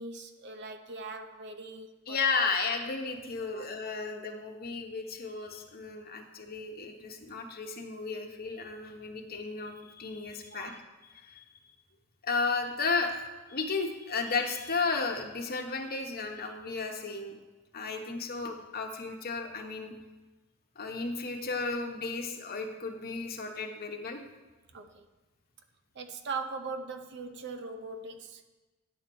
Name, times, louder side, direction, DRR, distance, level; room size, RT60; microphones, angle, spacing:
voice 1, 0.0-2.2 3.4-3.7 10.5-10.8 24.7-25.0 26.0-28.4, right 4 dB, 55° right, 8 dB, 0.6 m, -40 dB
voice 2, 2.1-10.8 11.1-11.4 12.2-13.2 13.5-17.3 17.7-19.9 20.8-24.2, left 4 dB, 45° left, 3 dB, 1.1 m, -34 dB
9.6 x 4.3 x 7.0 m, 1.2 s
head